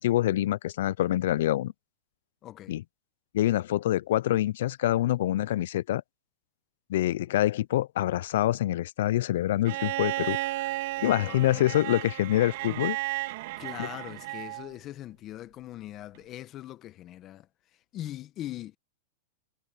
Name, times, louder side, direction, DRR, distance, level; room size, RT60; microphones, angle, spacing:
voice 1, 0.0-1.7 2.7-2.8 3.3-6.0 6.9-10.4 11.0-13.0 13.8-13.9, left 14 dB, 70° left, 0.3 m, -26 dB
voice 2, 2.4-2.8 11.0-11.8 13.6-17.5 17.9-18.8, left 13 dB, 35° left, 1.4 m, -41 dB
Bowed string instrument, 9.6-14.7 16.1-16.2, right 19 dB, 60° right, 1.7 m, -33 dB
hypercardioid pair, 130°, 0 cm